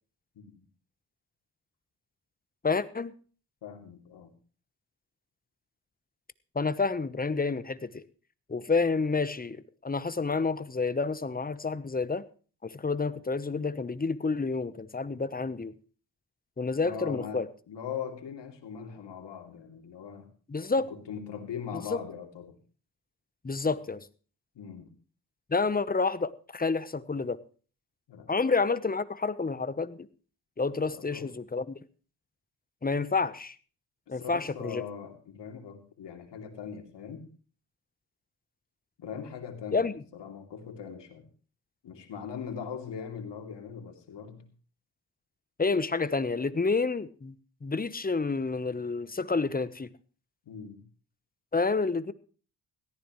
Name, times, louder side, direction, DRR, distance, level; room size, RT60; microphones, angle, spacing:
voice 1, 2.6-3.1 6.5-8.0 8.5-12.2 12.6-15.7 16.6-17.5 20.5-20.9 21.7-22.0 23.4-24.1 25.5-27.4 28.3-30.1 30.6-31.8 32.8-33.5 34.1-34.8 39.7-39.9 45.6-47.3 47.6-49.9 51.5-52.1, left 4 dB, 20° left, 15 dB, 0.9 m, -29 dB
voice 2, 3.6-4.3 16.8-20.3 20.9-22.6 24.5-24.9 28.1-28.3 30.8-31.3 34.1-37.3 39.0-41.3 41.8-44.5 50.5-50.8, left 7 dB, 75° left, 5 dB, 2.9 m, -41 dB
17.5 x 14.0 x 3.1 m, 0.39 s
cardioid pair, 65°, 43 cm